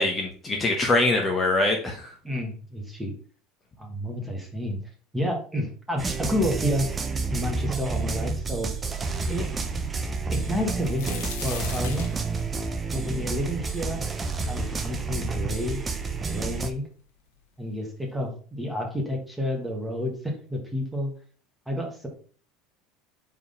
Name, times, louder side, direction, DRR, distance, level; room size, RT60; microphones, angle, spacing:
voice 1, 0.0-2.1, left 2 dB, 20° left, 1 dB, 1.1 m, -23 dB
voice 2, 2.2-3.1 3.8-4.8 5.1-6.9 7.3-8.7 9.3-9.5 10.3-12.1 12.9-14.0 14.5-15.8 16.3-16.9 17.6-21.1 21.7-22.1, left 1 dB, 5° right, 1 dB, 1.6 m, -30 dB
sound 1, 6.0-16.7, right 4 dB, 20° right, 0.7 m, -29 dB
sound 2, 10.4-14.3 14.8-14.9 15.6-15.7 16.0-16.7 17.5-17.6 18.0-18.2, left 7 dB, 85° left, 1.3 m, -40 dB
4.7 x 3.9 x 5.2 m, 0.42 s
supercardioid pair, 125°, 0 cm